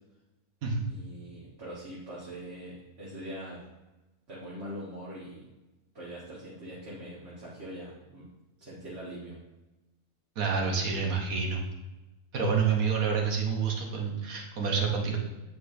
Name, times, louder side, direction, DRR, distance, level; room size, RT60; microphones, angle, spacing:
voice 1, 0.9-3.6 4.3-5.4 5.9-8.3 8.6-9.4, right 1 dB, 45° right, -7 dB, 1.5 m, -42 dB
voice 2, 10.4-11.6 12.3-15.2, right 5 dB, 70° right, 0 dB, 1.4 m, -28 dB
8.3 x 5.2 x 2.6 m, 1.1 s
omnidirectional pair, 1.6 m